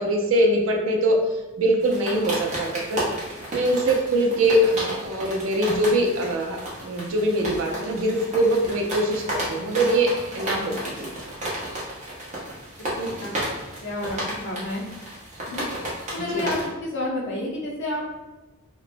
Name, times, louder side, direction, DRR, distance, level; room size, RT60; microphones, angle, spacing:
voice 1, 0.0-3.1 3.5-11.1 16.3-16.5, right 1 dB, 75° right, 2 dB, 0.5 m, -23 dB
In the Tent - Rain, 1.8-16.7, right 1 dB, 35° right, 0.8 m, -33 dB
voice 2, 12.8-13.3 13.8-14.8 15.5-15.6 16.1-18.0, left 1 dB, 60° left, -3 dB, 0.7 m, -30 dB
2.9 x 2.1 x 2.5 m, 1.1 s
head